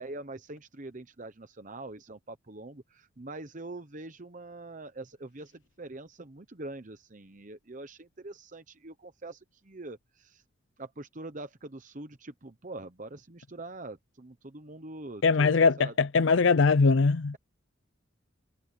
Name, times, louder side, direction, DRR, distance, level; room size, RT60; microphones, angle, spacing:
voice 1, 0.0-10.4 10.8-16.0, right 2 dB, 40° right, 1.0 m, -44 dB
voice 2, 15.2-17.3, left 4 dB, 70° left, 0.5 m, -22 dB
head